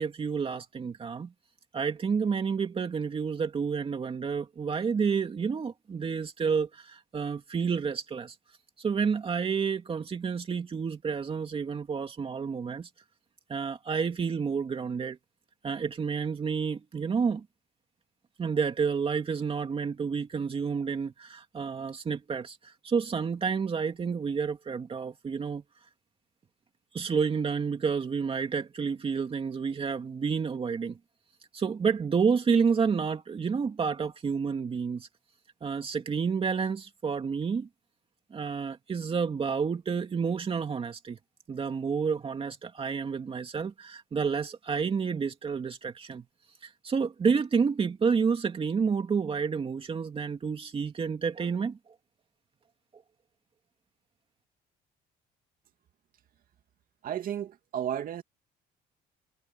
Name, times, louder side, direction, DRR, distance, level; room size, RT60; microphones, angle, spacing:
voice 1, 0.0-1.3 1.7-8.4 8.8-12.9 13.5-15.2 15.6-17.5 18.4-25.6 26.9-31.0 31.5-35.1 35.6-37.7 38.3-41.2 41.5-46.2 46.6-51.8, right 6 dB, 35° right, 2.6 m, -29 dB
voice 2, 57.0-58.2, right 10 dB, 55° right, 2.4 m, -33 dB
cardioid pair, 110°, 17 cm